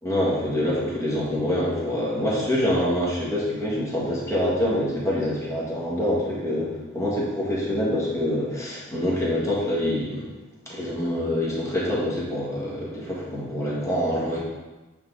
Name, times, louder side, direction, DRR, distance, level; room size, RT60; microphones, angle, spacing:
voice 1, 0.0-10.3 10.6-14.4, left 1 dB, 15° left, -6 dB, 1.5 m, -25 dB
8.6 x 3.5 x 3.8 m, 1.2 s
head